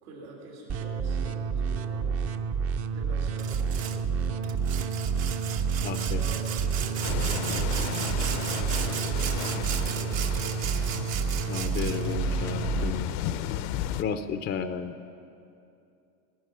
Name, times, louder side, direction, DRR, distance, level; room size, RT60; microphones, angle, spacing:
voice 1, 0.0-2.4 2.9-4.8 6.1-9.4 9.8-10.3, right 3 dB, 80° right, -3 dB, 3.2 m, -46 dB
sound 1, 0.7-12.9, right 6 dB, 35° right, 0.7 m, -29 dB
Sawing, 3.4-4.0 4.4-12.1, right 10 dB, 65° right, 1.2 m, -36 dB
voice 2, 5.8-6.2 11.5-13.1 14.0-14.9, left 6 dB, 25° left, 9 dB, 0.5 m, -33 dB
sound 2, 7.0-14.0, left 11 dB, 60° left, 0.7 m, -34 dB
17.5 x 11.0 x 5.6 m, 2.6 s
supercardioid pair, 105°, 43 cm